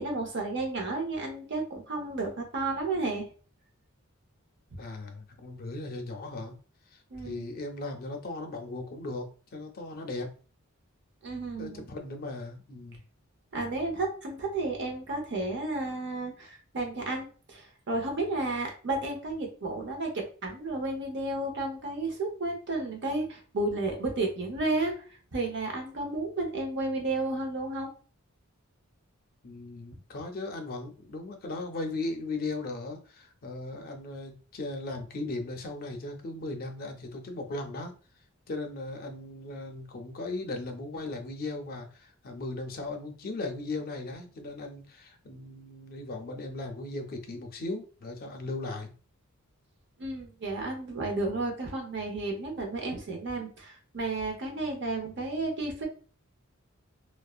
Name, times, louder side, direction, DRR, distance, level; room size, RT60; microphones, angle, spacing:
voice 1, 0.0-3.3 4.7-4.8 7.1-7.4 11.2-11.8 13.5-24.9 25.3-27.9 50.0-55.9, right 2 dB, 55° right, 2 dB, 0.7 m, -32 dB
voice 2, 4.8-6.5 6.9-10.3 11.6-13.0 29.4-38.0 38.5-48.9, left 2 dB, 45° left, 4 dB, 0.5 m, -37 dB
2.6 x 2.1 x 2.3 m, 0.38 s
head